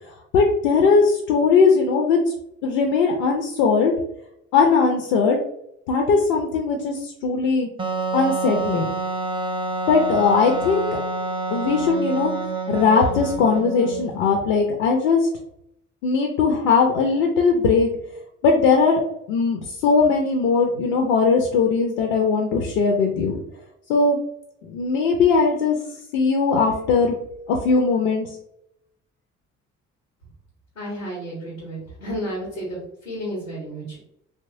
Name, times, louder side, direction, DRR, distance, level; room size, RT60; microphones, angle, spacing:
voice 1, 0.3-2.2 2.6-3.9 4.5-5.4 5.9-7.7 8.1-8.9 9.9-10.9 11.5-12.3 12.7-15.3 16.0-17.9 18.4-19.0 19.3-23.4 23.9-24.2 24.6-25.8 26.1-27.2 27.5-28.3, left 4 dB, 65° left, 2 dB, 0.5 m, -19 dB
Wind instrument woodwind instrument, 7.8-14.2, right 3 dB, 15° right, 0.3 m, -27 dB
voice 2, 30.8-34.0, equal, 85° left, -5 dB, 0.8 m, -32 dB
2.8 x 2.3 x 2.6 m, 0.78 s
figure-of-eight pair, 45°, 38 cm